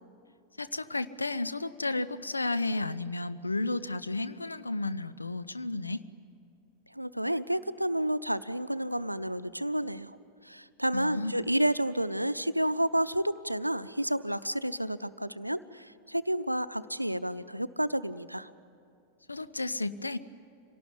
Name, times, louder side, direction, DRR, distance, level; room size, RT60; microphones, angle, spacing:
voice 1, 0.6-6.0 10.9-11.4 19.3-20.2, left 2 dB, 80° left, 13 dB, 0.7 m, -32 dB
voice 2, 6.9-10.2 10.4-18.5, right 1 dB, 90° right, 13 dB, 0.6 m, -30 dB
26.0 x 18.0 x 9.8 m, 2.6 s
figure-of-eight pair, 90°, 0 cm